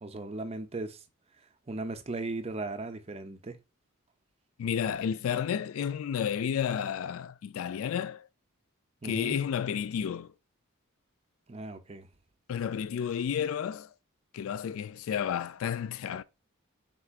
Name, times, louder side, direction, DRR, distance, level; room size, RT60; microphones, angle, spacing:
voice 1, 0.0-1.0 1.7-3.6 9.0-9.4 11.5-12.1, right 2 dB, 30° right, 0.5 m, -37 dB
voice 2, 4.6-8.3 9.0-10.3 12.5-13.9 14.3-16.2, left 8 dB, 70° left, 0.3 m, -31 dB
4.5 x 3.7 x 2.4 m
head